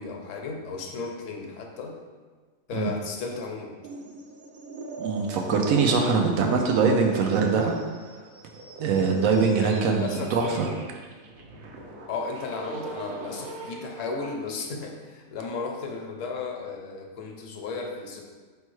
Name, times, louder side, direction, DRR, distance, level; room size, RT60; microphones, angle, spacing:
voice 1, 0.0-2.0 2.7-3.7 9.6-10.4 12.1-18.2, left 4 dB, 75° left, 2 dB, 0.9 m, -34 dB
sound 1, 3.8-14.3, right 2 dB, 60° right, 0.6 m, -41 dB
voice 2, 5.0-7.7 8.8-10.7, right 5 dB, 85° right, 2 dB, 1.0 m, -23 dB
4.4 x 3.4 x 3.1 m, 1.5 s
omnidirectional pair, 1.4 m